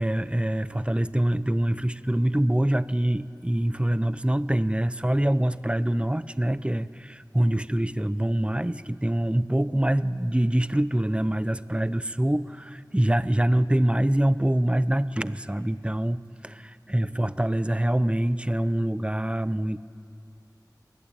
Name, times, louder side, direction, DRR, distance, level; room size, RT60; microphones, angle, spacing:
voice 1, 0.0-19.8, right 1 dB, 15° right, 14 dB, 0.8 m, -25 dB
29.0 x 21.0 x 9.0 m, 2.7 s
wide cardioid pair, 50°, 7 cm